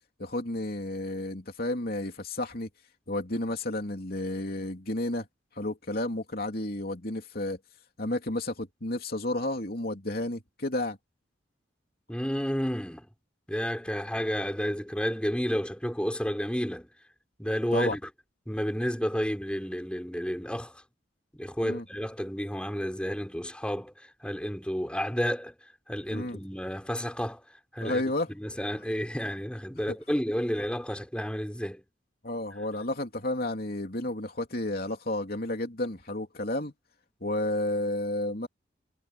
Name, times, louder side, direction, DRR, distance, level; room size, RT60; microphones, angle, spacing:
voice 1, 0.2-2.7 3.1-5.3 5.6-7.6 8.0-11.0 17.7-18.0 21.6-21.8 26.1-26.4 27.8-28.3 32.2-36.7 37.2-38.5, left 1 dB, 50° left, 3.1 m, -31 dB
voice 2, 12.1-13.1 13.5-16.9 17.4-18.0 18.5-20.8 21.3-25.5 25.9-27.4 27.7-28.0 28.3-31.8, equal, 5° left, 4.9 m, -31 dB
head